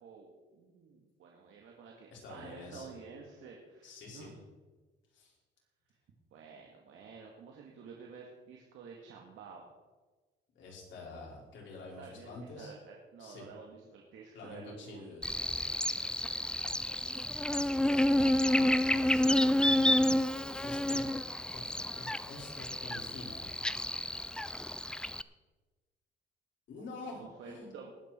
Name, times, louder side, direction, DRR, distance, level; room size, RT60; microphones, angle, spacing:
voice 1, 0.0-4.4 6.3-9.7 11.8-15.2 17.9-18.5 18.9-19.7 26.7-26.8 27.1-27.9, right 5 dB, 80° right, 0 dB, 2.0 m, -51 dB
voice 2, 2.1-2.9 3.8-4.3 5.1-5.3 10.6-12.7 13.2-13.4 14.3-15.6 18.6-19.5 20.6-21.1 21.5-23.5 26.7-27.7, left 3 dB, 70° left, -3 dB, 5.3 m, -47 dB
Buzz, 15.2-25.2, left 1 dB, 5° left, 0.4 m, -30 dB
20.0 x 8.6 x 4.5 m, 1.3 s
cardioid pair, 90°, 20 cm